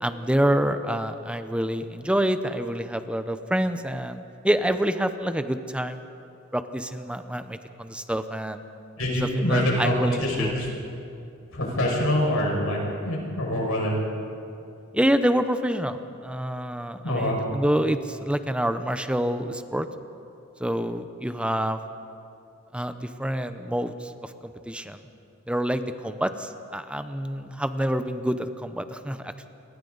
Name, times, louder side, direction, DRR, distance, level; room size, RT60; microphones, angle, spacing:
voice 1, 0.0-4.2 4.4-6.0 6.5-8.6 9.2-10.5 14.9-19.9 20.6-21.8 22.7-25.0 25.5-29.5, right 1 dB, 5° right, 9 dB, 0.7 m, -27 dB
voice 2, 9.0-9.9 10.2-10.7 11.5-14.0 17.0-17.4, left 1 dB, 80° left, -2 dB, 6.1 m, -25 dB
28.0 x 23.0 x 4.0 m, 2.6 s
head